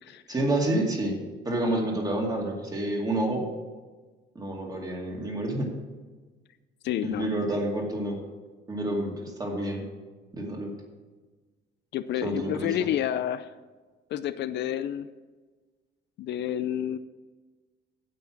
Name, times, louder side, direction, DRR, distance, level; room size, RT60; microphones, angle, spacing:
voice 1, 0.3-1.2 1.5-3.4 4.4-5.7 7.0-8.2 8.7-9.9 10.3-10.7 12.2-12.9, right 1 dB, 20° right, 0 dB, 2.2 m, -29 dB
voice 2, 6.8-7.3 11.9-13.5 14.1-15.1 16.2-17.0, left 11 dB, 65° left, 12 dB, 0.5 m, -29 dB
9.3 x 7.9 x 6.0 m, 1.3 s
cardioid pair, 145°, 19 cm